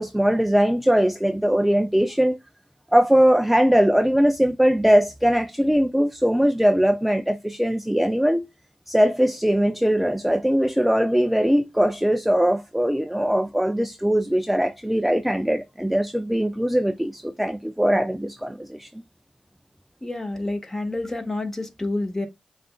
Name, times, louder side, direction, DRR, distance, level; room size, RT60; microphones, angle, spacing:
voice 1, 0.0-2.4 2.9-8.5 8.9-18.9, equal, 5° right, 0.4 m, -20 dB
voice 2, 20.0-22.3, left 2 dB, 20° left, 1.4 m, -28 dB
7.2 x 2.5 x 2.2 m
cardioid pair, 50°, 2 cm